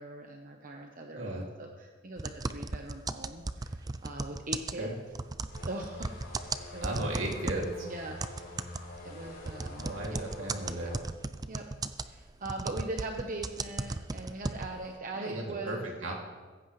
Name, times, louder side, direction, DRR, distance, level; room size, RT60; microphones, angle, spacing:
voice 1, 0.0-4.9 5.6-7.0 7.8-8.4 9.0-10.2 10.5-11.0 11.5-11.7 12.0-15.9, right 2 dB, 45° right, 2 dB, 1.0 m, -41 dB
voice 2, 1.1-1.4 4.8-4.9 6.8-7.9 9.8-11.0 15.1-16.1, right 1 dB, 80° right, -1 dB, 2.7 m, -35 dB
sound 1, 2.2-7.8 8.2-14.9, right 3 dB, 20° right, 0.4 m, -36 dB
sound 2, 5.5-11.0, left 1 dB, 60° left, 4.6 m, -46 dB
15.5 x 15.5 x 3.3 m, 1.4 s
head